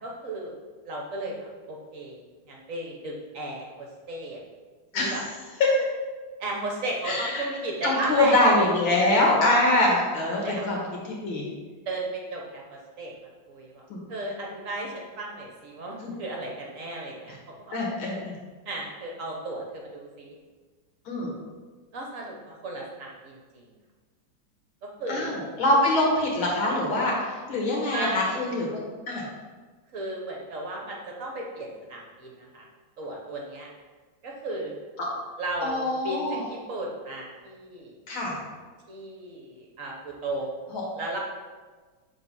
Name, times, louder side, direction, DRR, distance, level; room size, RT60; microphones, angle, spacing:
voice 1, 0.0-0.5 0.8-2.2 2.5-4.4 4.9-5.2 6.4-9.5 10.3-10.7 11.9-13.1 13.5-13.8 14.1-17.8 18.7-20.3 21.9-23.6 24.8-25.4 27.9-28.4 29.9-32.6 33.0-33.7 34.2-34.7 35.4-38.0 38.9-40.6 41.0-41.2, right 2 dB, 50° right, -1 dB, 1.1 m, -35 dB
voice 2, 7.0-7.4 7.8-10.8 11.1-11.4 13.9-14.0 16.0-16.1 17.7-18.3 21.1-21.3 25.1-28.7 29.1-29.3 35.0-35.1 35.6-36.4 38.1-38.4 40.7-40.8, left 2 dB, 85° left, -2 dB, 2.4 m, -24 dB
7.0 x 3.9 x 5.4 m, 1.4 s
omnidirectional pair, 2.2 m